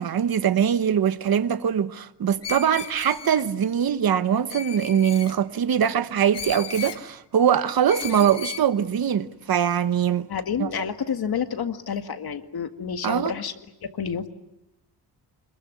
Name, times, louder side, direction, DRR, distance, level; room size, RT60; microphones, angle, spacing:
voice 1, 0.0-10.3 10.6-10.7 13.0-13.3, right 8 dB, 55° right, 1.1 m, -22 dB
Screech, 2.4-3.4 4.5-5.3 6.3-7.0 7.9-8.7, left 7 dB, 75° left, 2.0 m, -35 dB
voice 2, 10.3-13.5 13.8-14.3, left 7 dB, 60° left, 2.0 m, -29 dB
26.0 x 21.5 x 9.6 m
wide cardioid pair, 130°, 42 cm